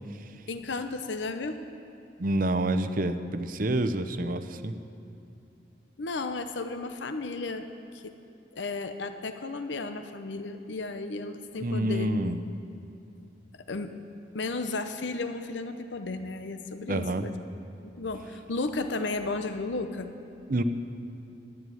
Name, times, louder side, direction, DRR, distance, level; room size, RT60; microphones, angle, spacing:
voice 1, 0.5-1.6 6.0-7.7 7.9-8.1 8.5-12.1 13.7-14.0 14.3-17.4 17.8-20.1, left 3 dB, 80° left, 8 dB, 0.8 m, -34 dB
voice 2, 2.2-4.7 11.6-12.4 16.9-17.3 20.5-20.6, right 1 dB, 50° right, 10 dB, 0.7 m, -27 dB
12.5 x 11.0 x 9.1 m, 2.8 s
head